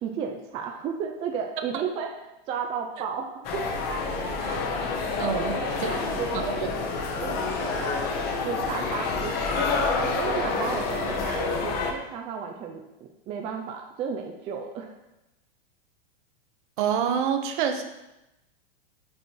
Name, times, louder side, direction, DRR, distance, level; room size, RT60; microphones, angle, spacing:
voice 1, 0.0-2.1 2.5-3.7 5.3-6.6 7.2-8.1 8.4-12.8 13.3-15.0, right 6 dB, 20° right, 2 dB, 0.4 m, -33 dB
sound 1, 3.4-11.9, left 4 dB, 30° left, 0.9 m, -28 dB
voice 2, 5.2-5.6 6.6-6.7 16.8-17.8, right 8 dB, 55° right, 6 dB, 0.9 m, -26 dB
5.4 x 4.2 x 4.5 m, 0.94 s
supercardioid pair, 140°, 30 cm